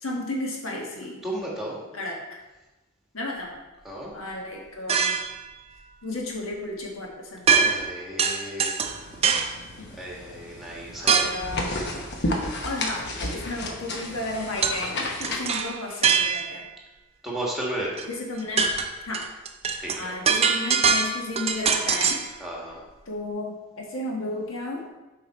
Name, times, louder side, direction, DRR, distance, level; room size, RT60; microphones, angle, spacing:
voice 1, 0.0-1.2 1.9-2.4 3.1-3.6 4.1-5.2 6.0-7.7 9.8-10.0 10.9-11.7 12.6-16.6 18.1-18.7 19.1-19.3 20.0-22.2 23.1-24.8, left 2 dB, 70° left, -1 dB, 1.4 m, -33 dB
voice 2, 1.2-1.8 3.8-4.1 7.6-8.8 9.9-11.3 17.2-18.1 19.8-20.1 22.4-22.8, right 1 dB, ahead, -4 dB, 1.6 m, -33 dB
sound 1, 4.9-5.4 7.5-7.9 8.2-9.6 11.1-11.5 14.6-14.8 15.2-16.6 18.0-18.1 18.4-22.3, right 6 dB, 30° right, 0.5 m, -23 dB
sound 2, 8.8-15.5, left 1 dB, 50° left, 1.0 m, -33 dB
7.7 x 4.9 x 4.3 m, 1.1 s
head